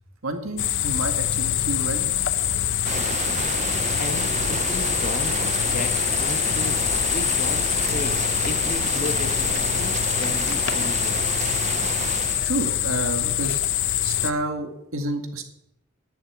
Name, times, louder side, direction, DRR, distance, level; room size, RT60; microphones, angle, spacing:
voice 1, 0.2-2.1 3.3-3.4 12.3-13.6 14.0-15.4, right 2 dB, 75° right, 4 dB, 1.9 m, -29 dB
sound 1, 0.6-14.3, left 11 dB, 55° left, 0.6 m, -24 dB
sound 2, 2.8-12.5, right 7 dB, 30° right, 0.3 m, -30 dB
voice 2, 3.2-11.2, left 2 dB, 40° left, 8 dB, 1.1 m, -35 dB
11.0 x 6.7 x 8.9 m, 0.80 s
head